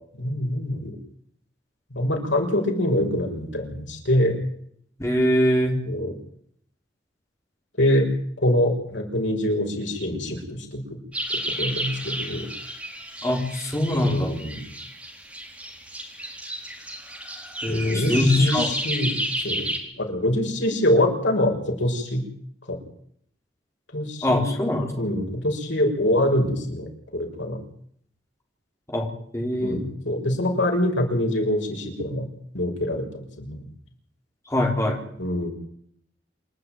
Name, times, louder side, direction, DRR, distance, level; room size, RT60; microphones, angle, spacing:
voice 1, 0.1-0.9 1.9-4.4 5.8-6.1 7.8-8.1 8.4-10.8 11.6-12.5 13.9-14.6 17.7-19.1 19.4-19.7 20.0-22.2 22.7-22.8 23.9-24.4 25.0-27.6 29.6-32.3 32.5-33.6 35.2-35.5, left 1 dB, 85° left, 1 dB, 6.2 m, -24 dB
voice 2, 5.0-5.8 13.2-14.3 17.6-18.7 24.2-24.9 28.9-29.1 29.3-29.9 34.5-35.0, left 1 dB, 15° left, 1 dB, 3.6 m, -22 dB
sound 1, 11.1-19.8, right 1 dB, 5° right, 4.2 m, -32 dB
28.0 x 12.0 x 9.3 m, 0.66 s
head